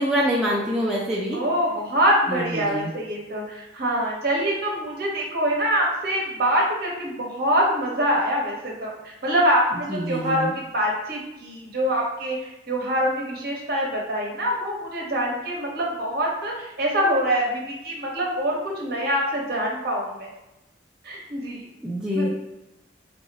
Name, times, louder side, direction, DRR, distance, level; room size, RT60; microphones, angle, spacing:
voice 1, 0.0-1.4 2.3-2.9 9.7-10.5 21.8-22.3, equal, 5° right, -6 dB, 0.4 m, -25 dB
voice 2, 1.3-20.3 21.0-21.7 22.1-22.3, equal, 55° right, -2 dB, 0.9 m, -25 dB
3.6 x 2.0 x 4.0 m, 0.94 s
head